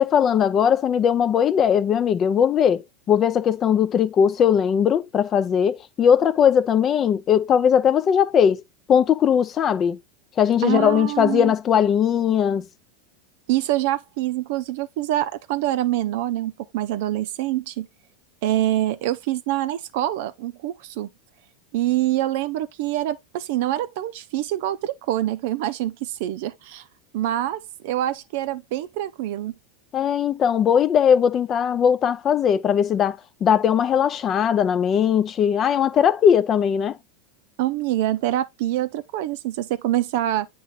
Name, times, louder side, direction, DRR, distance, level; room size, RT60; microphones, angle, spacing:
voice 1, 0.0-2.8 3.1-8.6 8.9-10.0 10.4-12.6 29.9-37.0, left 8 dB, 35° left, 0.6 m, -19 dB
voice 2, 10.6-11.5 13.5-17.9 18.4-21.1 21.7-26.8 27.1-29.5 37.6-40.5, right 14 dB, 60° right, 0.6 m, -25 dB
8.5 x 3.1 x 4.0 m
hypercardioid pair, 90°, 0 cm